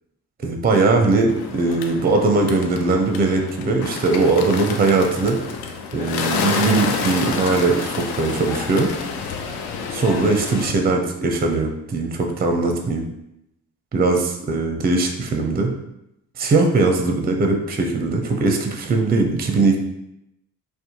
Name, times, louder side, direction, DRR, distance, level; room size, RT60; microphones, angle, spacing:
voice 1, 0.4-5.4 5.9-8.9 9.9-13.0 13.9-15.7 16.4-19.8, right 3 dB, 25° right, 3 dB, 0.5 m, -20 dB
Bird, 1.3-10.7, left 5 dB, 65° left, 0.5 m, -28 dB
2.6 x 2.1 x 2.9 m, 0.82 s
hypercardioid pair, 45°, 41 cm